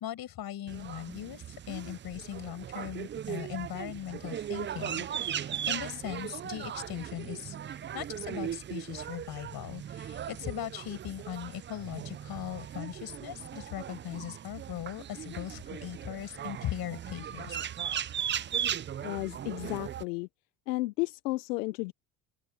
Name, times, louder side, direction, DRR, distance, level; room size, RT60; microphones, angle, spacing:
voice 1, 0.0-17.6, left 11 dB, 50° left, 7.1 m, -39 dB
sound 1, 0.7-20.0, right 9 dB, 25° right, 0.5 m, -38 dB
voice 2, 19.0-20.3 20.7-21.9, left 21 dB, 85° left, 1.0 m, -33 dB
open air
supercardioid pair, 85°, 47 cm